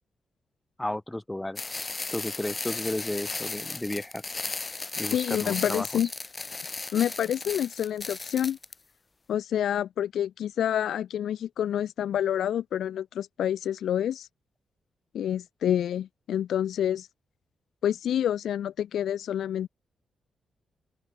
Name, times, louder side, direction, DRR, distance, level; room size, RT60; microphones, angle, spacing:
voice 1, 0.8-4.2 5.0-5.9, left 1 dB, 10° left, 3.9 m, -33 dB
sound 1, 1.6-8.7, left 3 dB, 30° left, 2.4 m, -36 dB
voice 2, 5.1-6.1 6.9-8.6 9.3-14.3 15.1-17.1 17.8-19.7, left 10 dB, 80° left, 1.5 m, -28 dB
open air
cardioid pair, 105°, 0 cm